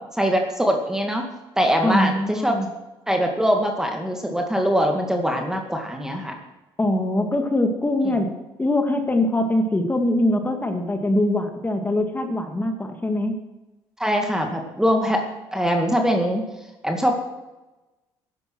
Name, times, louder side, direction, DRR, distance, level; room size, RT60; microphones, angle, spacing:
voice 1, 0.2-1.3 1.6-2.6 3.1-6.4 14.0-15.2 15.5-16.4 16.8-17.2, equal, 5° right, 3 dB, 2.1 m, -22 dB
voice 2, 1.8-2.7 6.8-8.3 8.6-13.4, left 1 dB, 20° left, 4 dB, 2.4 m, -22 dB
14.0 x 11.5 x 6.3 m, 1.1 s
cardioid pair, 85°, 10 cm